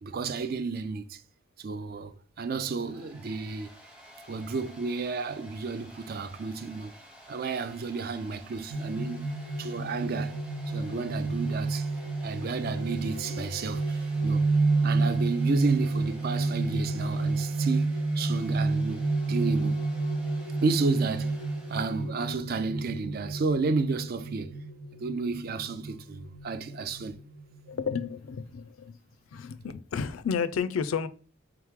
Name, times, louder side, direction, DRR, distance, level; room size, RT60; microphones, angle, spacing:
voice 1, 0.0-1.2 1.6-3.7 4.3-6.9 7.3-9.3 9.6-10.4 10.7-11.9 12.2-14.5 14.8-19.8 20.6-21.4 21.7-24.6 25.0-27.2, right 4 dB, 45° right, 0.4 m, -32 dB
Domestic sounds home sounds, 2.6-22.1, equal, 5° right, 0.7 m, -52 dB
sound 1, 8.7-27.9, right 3 dB, 85° right, 0.8 m, -30 dB
voice 2, 27.7-29.0 29.3-31.1, left 6 dB, 85° left, 0.4 m, -31 dB
3.6 x 3.0 x 3.6 m
head